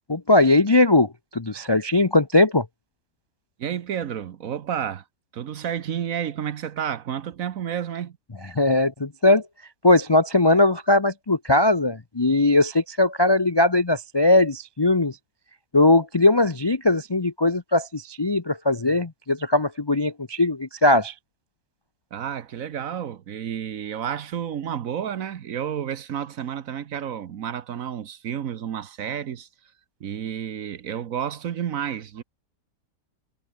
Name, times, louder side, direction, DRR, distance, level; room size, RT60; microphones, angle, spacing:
voice 1, 0.1-2.7 8.5-9.4 9.8-15.2 15.7-21.1, left 2 dB, 30° left, 0.4 m, -20 dB
voice 2, 3.6-5.0 5.3-8.2 22.1-29.5 30.0-32.2, right 9 dB, 60° right, 1.2 m, -30 dB
omnidirectional pair, 1.8 m